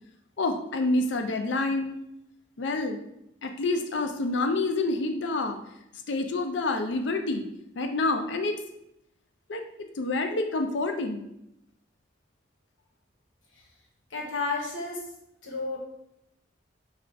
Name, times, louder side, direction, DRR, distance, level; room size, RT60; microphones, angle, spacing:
voice 1, 0.4-2.0 2.6-3.0 3.4-5.6 6.1-7.5 7.8-8.6 9.5-9.6 10.0-11.3, left 2 dB, 75° left, 6 dB, 0.5 m, -27 dB
voice 2, 14.1-15.1 15.4-15.8, left 3 dB, 90° left, -1 dB, 1.1 m, -32 dB
4.9 x 2.4 x 3.3 m, 0.81 s
head